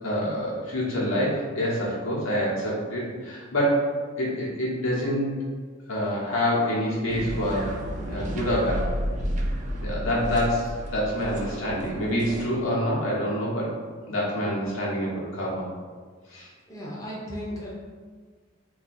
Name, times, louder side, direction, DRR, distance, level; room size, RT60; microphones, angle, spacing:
voice 1, 0.0-3.8 4.2-5.3 5.9-7.8 8.1-8.9 9.8-13.8 14.1-15.6 16.3-16.5, equal, 85° left, -5 dB, 1.1 m, -26 dB
sound 1, 7.1-12.4, equal, 35° right, 0.4 m, -31 dB
voice 2, 16.7-17.7, equal, 15° left, -5 dB, 0.5 m, -35 dB
2.7 x 2.6 x 4.2 m, 1.5 s
head